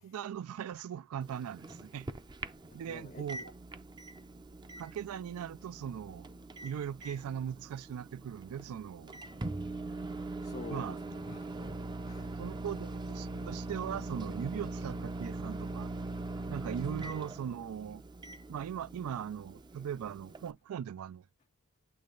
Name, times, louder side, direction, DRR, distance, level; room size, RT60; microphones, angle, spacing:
voice 1, 0.0-2.1 2.7-3.5 4.8-6.3 6.6-9.1 10.7-11.0 12.4-15.9 16.5-18.0 18.5-21.2, right 8 dB, 75° right, 0.3 m, -39 dB
Microwave oven, 1.2-20.5, right 2 dB, 20° right, 0.5 m, -42 dB
voice 2, 2.7-3.5 10.4-12.3, left 4 dB, 30° left, 0.4 m, -49 dB
8.5 x 3.2 x 3.7 m
head